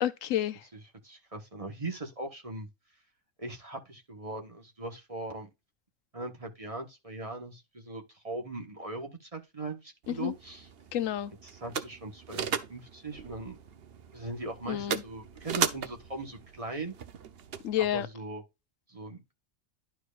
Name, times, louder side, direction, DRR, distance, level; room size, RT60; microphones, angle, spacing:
voice 1, 0.0-0.6 10.1-10.3 10.9-11.3 14.7-15.0 17.6-18.1, left 11 dB, 80° left, 1.0 m, -30 dB
voice 2, 1.0-2.7 3.4-5.5 6.1-10.7 11.4-13.6 14.1-16.9 17.9-18.4 18.9-19.4, right 2 dB, 30° right, 1.2 m, -39 dB
sound 1, 10.0-18.1, right 7 dB, 55° right, 0.9 m, -37 dB
12.0 x 4.6 x 2.4 m
omnidirectional pair, 1.3 m